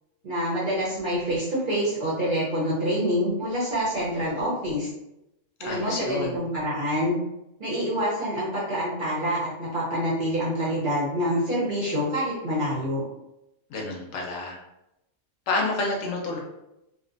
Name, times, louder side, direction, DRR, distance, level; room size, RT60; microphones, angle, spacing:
voice 1, 0.2-4.9 5.6-7.1 7.6-13.0, equal, 50° right, -7 dB, 0.7 m, -26 dB
voice 2, 5.6-6.4 13.7-14.6 15.5-16.4, left 3 dB, 70° left, -1 dB, 0.9 m, -29 dB
2.7 x 2.1 x 2.5 m, 0.88 s
omnidirectional pair, 1.4 m